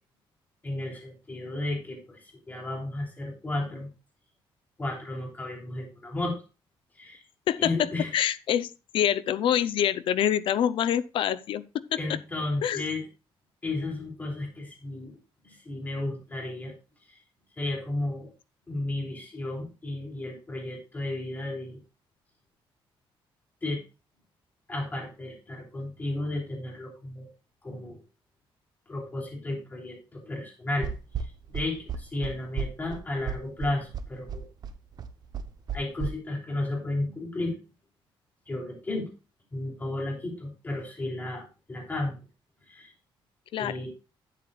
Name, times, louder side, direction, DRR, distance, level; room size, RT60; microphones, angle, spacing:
voice 1, 0.6-3.9 4.8-6.4 7.0-7.2 7.6-8.1 12.0-13.0 13.6-15.2 15.4-16.7 17.6-18.3 18.7-21.8 23.6-23.8 24.7-27.3 27.6-28.0 28.9-30.9 31.5-34.4 35.7-37.5 38.5-39.1 39.5-42.2 42.7-42.9 43.6-43.9, left 2 dB, 20° left, 3.3 m, -33 dB
voice 2, 7.5-11.6 12.6-12.8 43.5-43.8, left 10 dB, 65° left, 0.6 m, -26 dB
sound 1, 30.8-36.1, right 6 dB, 45° right, 0.8 m, -33 dB
11.5 x 8.4 x 2.4 m
cardioid pair, 175°, 10 cm